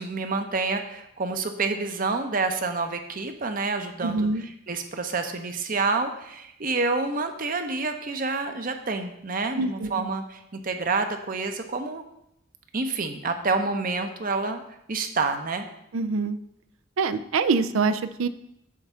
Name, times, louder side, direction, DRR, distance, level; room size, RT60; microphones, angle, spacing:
voice 1, 0.0-4.3 4.7-12.0 12.7-14.6 14.9-15.6, right 3 dB, 40° right, 6 dB, 0.7 m, -28 dB
voice 2, 4.0-4.4 9.6-10.1 15.9-16.4 17.0-18.3, right 4 dB, 80° right, 12 dB, 0.5 m, -25 dB
8.5 x 3.6 x 6.8 m, 0.79 s
head